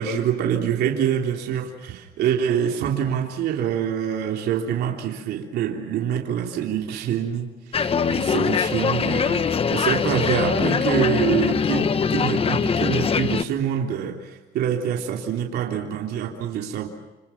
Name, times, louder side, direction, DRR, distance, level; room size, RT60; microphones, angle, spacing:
voice 1, 0.0-16.9, right 9 dB, 75° right, 1 dB, 3.5 m, -25 dB
sound 1, 7.7-13.4, left 6 dB, 35° left, 1.1 m, -22 dB
29.0 x 27.5 x 6.0 m, 1.1 s
cardioid pair, 110°, 17 cm